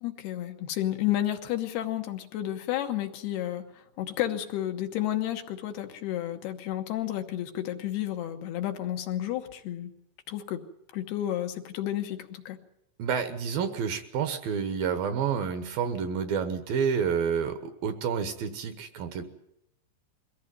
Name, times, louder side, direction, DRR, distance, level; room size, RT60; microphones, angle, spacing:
voice 1, 0.0-9.9 10.3-10.6 10.9-12.6, left 12 dB, 75° left, 5 dB, 3.2 m, -31 dB
voice 2, 13.0-19.2, right 6 dB, 70° right, 9 dB, 2.7 m, -29 dB
22.5 x 15.5 x 9.2 m, 0.80 s
omnidirectional pair, 4.9 m